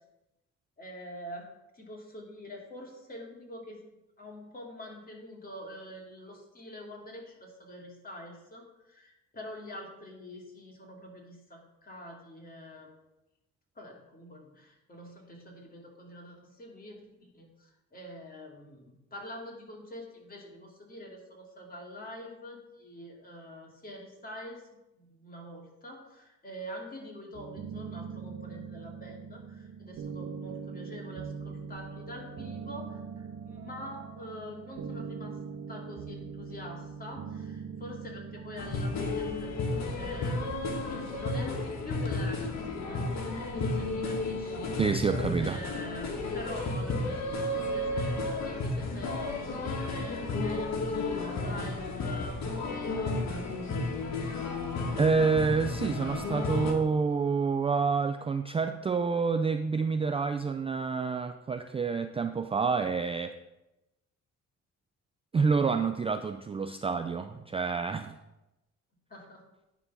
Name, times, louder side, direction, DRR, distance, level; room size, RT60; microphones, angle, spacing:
voice 1, 0.8-1.5 1.7-3.8 4.2-12.9 13.8-35.4 35.7-40.5 40.9-43.1 43.5-45.0 45.4-53.3 69.1-69.4, equal, 30° left, -1 dB, 2.3 m, -45 dB
sound 1, 27.3-39.5, right 6 dB, 55° right, 0.8 m, -42 dB
sound 2, 38.6-56.7, left 2 dB, 60° left, 1.6 m, -32 dB
voice 2, 44.8-45.6 55.0-63.3 65.3-68.1, right 5 dB, 20° right, 8 dB, 0.3 m, -28 dB
9.6 x 3.8 x 5.8 m, 0.95 s
cardioid pair, 90°, 30 cm